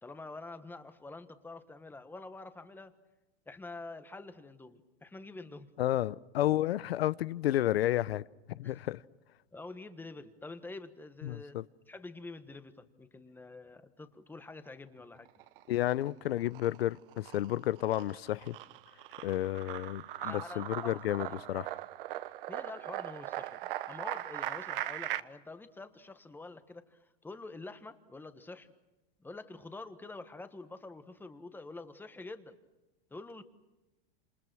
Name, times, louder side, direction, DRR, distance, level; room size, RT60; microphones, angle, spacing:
voice 1, 0.0-2.9 3.5-5.7 8.6-8.8 9.5-11.6 11.9-15.3 20.2-21.0 22.5-23.6 23.9-28.7 29.2-32.6 33.1-33.4, left 3 dB, 5° left, 1.4 m, -47 dB
voice 2, 5.8-9.0 11.2-11.6 15.7-18.6 19.2-21.7, left 13 dB, 90° left, 0.8 m, -31 dB
sound 1, 15.2-16.1 16.4-25.2, right 14 dB, 65° right, 1.1 m, -40 dB
28.5 x 27.5 x 6.2 m
supercardioid pair, 145°, 30 cm